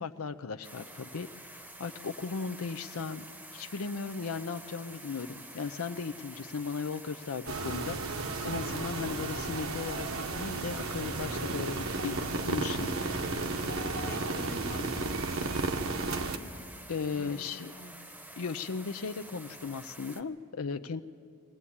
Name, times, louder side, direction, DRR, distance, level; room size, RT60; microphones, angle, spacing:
voice 1, 0.0-3.3 3.5-12.2 12.4-12.9 16.9-17.7 18.4-21.0, left 5 dB, 90° left, 9 dB, 0.6 m, -37 dB
sound 1, 0.6-20.2, right 1 dB, 5° right, 0.9 m, -48 dB
sound 2, 7.5-16.4, right 3 dB, 80° right, 1.2 m, -33 dB
voice 2, 14.0-16.4 17.1-18.1, left 2 dB, 40° left, 7 dB, 1.0 m, -46 dB
22.5 x 18.5 x 8.6 m, 2.3 s
head